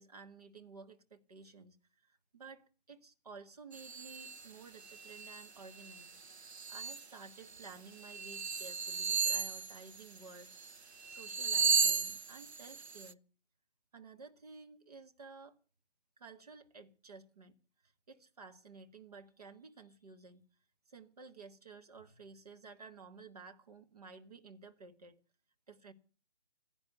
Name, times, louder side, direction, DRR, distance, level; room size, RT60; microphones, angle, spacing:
voice 1, 0.0-10.5 11.1-13.2 13.9-15.6 16.2-17.6 17.8-20.4 20.9-25.2 25.7-25.9, right 4 dB, 30° right, 1.6 m, -54 dB
sound 1, 3.7-4.4 4.9-5.5 5.8-7.0 7.6-7.7 8.0-10.7 11.0-13.1, right 5 dB, 60° right, 0.8 m, -35 dB
16.0 x 10.5 x 8.0 m
figure-of-eight pair, 155°, 37 cm